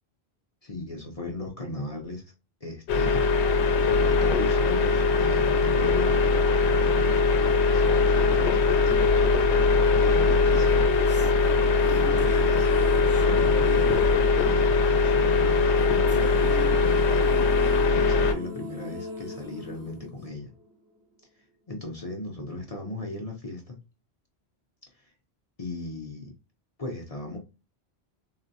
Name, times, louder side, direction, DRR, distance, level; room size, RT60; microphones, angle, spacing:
voice 1, 0.6-2.3 2.6-3.3 3.9-7.2 7.7-9.0 9.9-11.0 11.9-12.7 13.2-13.9 14.4-20.5 21.7-23.8 24.9-25.1 25.6-26.3 26.8-27.4, left 2 dB, 40° left, 0 dB, 0.7 m, -36 dB
sound 1, 2.9-18.3, left 4 dB, 85° left, 0.9 m, -21 dB
sound 2, 10.5-21.0, equal, 15° right, 0.6 m, -41 dB
3.9 x 2.1 x 2.5 m, 0.29 s
omnidirectional pair, 1.1 m